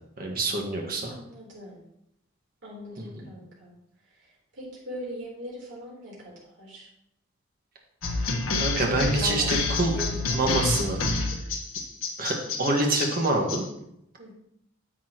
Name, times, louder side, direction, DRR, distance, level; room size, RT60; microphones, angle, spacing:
voice 1, 0.2-1.1 3.2-3.3 8.6-9.9 10.3-11.0 12.2-13.6, right 2 dB, 45° right, 0 dB, 1.7 m, -26 dB
voice 2, 1.1-1.8 2.6-3.8 4.5-6.9 8.7-9.6 9.9-10.6 11.2-11.4 14.2-14.3, equal, 65° right, -4 dB, 3.8 m, -40 dB
Beatbox Rumble, 8.0-13.6, left 3 dB, 80° left, 1.4 m, -28 dB
10.5 x 7.4 x 3.0 m, 0.78 s
head